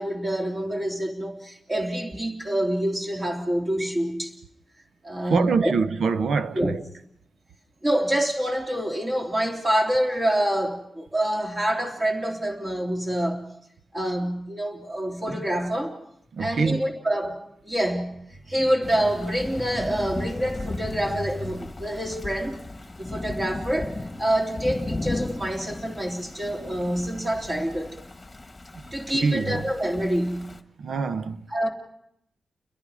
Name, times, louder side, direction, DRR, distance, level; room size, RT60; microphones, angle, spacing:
voice 1, 0.0-4.3 5.0-5.7 6.5-6.7 7.8-13.5 13.9-16.0 16.4-18.2 18.5-22.6 23.0-28.0 28.9-30.6 31.5-31.7, right 1 dB, 25° right, 3.1 m, -26 dB
voice 2, 5.3-6.8 16.3-16.8 28.7-29.6 30.8-31.4, right 5 dB, 80° right, 1.0 m, -25 dB
Thunder / Rain, 18.8-30.6, left 2 dB, 15° left, 1.6 m, -36 dB
30.0 x 22.0 x 4.9 m
wide cardioid pair, 140°, 0 cm